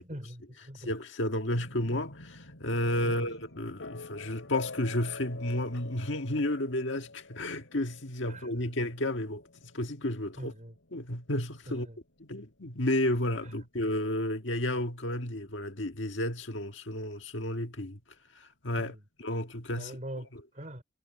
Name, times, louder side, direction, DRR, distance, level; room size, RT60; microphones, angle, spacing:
voice 1, 0.0-0.9 3.0-3.3 8.3-8.7 10.4-10.7 11.7-12.0 18.8-19.0 19.7-20.3 20.5-20.8, right 1 dB, 40° right, 5.3 m, -43 dB
voice 2, 0.9-10.5 10.9-11.9 12.2-18.0 18.3-20.0 20.3-20.4, left 1 dB, 65° left, 1.8 m, -32 dB
sound 1, 1.5-15.3, left 3 dB, 85° left, 3.4 m, -48 dB
head